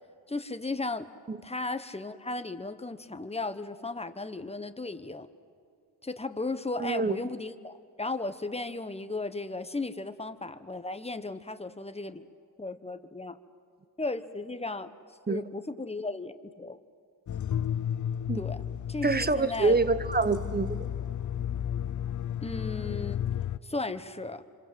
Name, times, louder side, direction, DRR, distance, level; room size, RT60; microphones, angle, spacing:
voice 1, 0.3-1.1 1.4-5.3 6.0-12.2 12.6-13.4 14.0-14.9 15.3-16.8 18.3-18.6 18.9-19.8 22.4-23.2 23.6-24.4, left 3 dB, 15° left, 10 dB, 1.2 m, -35 dB
voice 2, 6.8-7.2 15.3-15.4 18.3-18.4 19.0-20.9, right 3 dB, 20° right, 14 dB, 1.1 m, -26 dB
sound 1, 17.3-23.6, left 9 dB, 45° left, 0.6 m, -33 dB
26.0 x 26.0 x 7.7 m, 2.3 s
cardioid pair, 70°, 42 cm